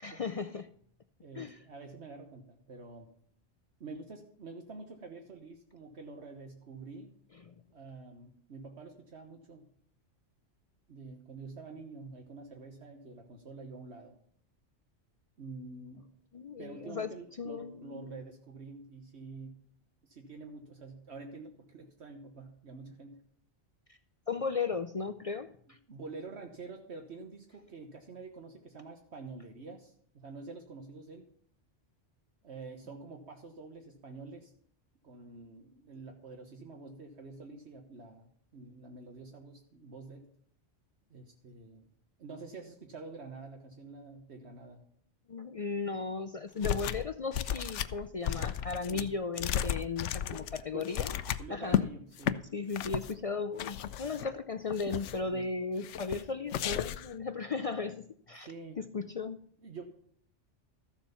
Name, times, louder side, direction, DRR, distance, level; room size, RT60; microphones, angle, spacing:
voice 1, 0.0-0.7 1.3-1.6 7.5-7.6 16.3-17.1 17.4-18.2 23.9-24.0 24.3-25.8 45.3-51.8 52.5-58.5 58.8-59.5, left 4 dB, 55° left, 10 dB, 0.4 m, -36 dB
voice 2, 1.2-3.1 3.8-7.1 7.7-9.7 10.9-14.2 15.4-16.1 16.6-19.6 20.0-23.2 25.9-31.2 32.4-34.5 35.0-40.3 41.1-41.9 42.2-44.9 48.9-49.1 50.3-50.4 50.7-50.9 51.4-52.5 55.2-55.5 58.4-58.9 59.6-59.8, right 3 dB, 70° right, 3 dB, 1.5 m, -47 dB
sound 1, 46.6-47.1 47.3-51.8 52.2-52.4 52.7-53.1 53.6-54.3 54.7-55.3 55.8-56.2 56.5-57.1, left 10 dB, 85° left, 0.9 m, -33 dB
14.0 x 7.2 x 5.6 m, 0.63 s
omnidirectional pair, 1.2 m